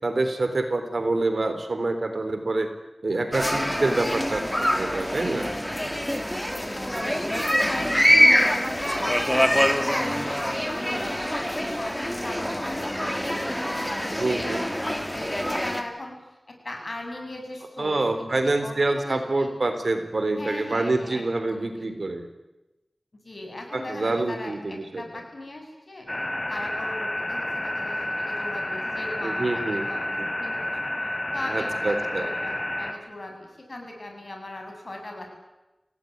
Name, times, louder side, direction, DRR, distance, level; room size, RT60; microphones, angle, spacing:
voice 1, 0.0-2.7 3.0-5.5 14.1-14.6 17.8-22.3 23.7-25.0 29.2-29.9 30.2-30.3 31.5-32.3, right 2 dB, 70° right, 8 dB, 3.7 m, -26 dB
sound 1, 3.3-15.8, equal, 5° left, 2.7 m, -24 dB
voice 2, 6.3-13.8 14.3-19.5 20.4-21.9 23.2-26.1 26.5-30.1 30.4-30.9 31.3-35.3, left 1 dB, 55° left, 3 dB, 7.8 m, -39 dB
sound 2, 26.1-32.9, left 1 dB, 30° left, 3.5 m, -30 dB
27.0 x 18.0 x 9.6 m, 1.0 s
wide cardioid pair, 65°, 0 cm